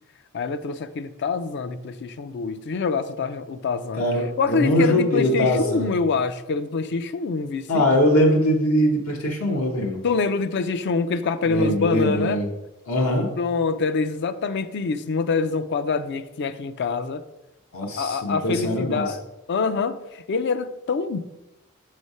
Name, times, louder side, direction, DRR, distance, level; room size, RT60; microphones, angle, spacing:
voice 1, 0.3-4.0 4.4-7.9 10.0-12.4 13.4-17.2 18.0-19.2 19.5-21.2, left 4 dB, 55° left, 0.4 m, -25 dB
voice 2, 3.9-5.9 7.7-10.0 11.4-12.5 12.9-13.3 17.7-19.1, equal, 75° left, 1.0 m, -22 dB
6.3 x 3.3 x 5.3 m
head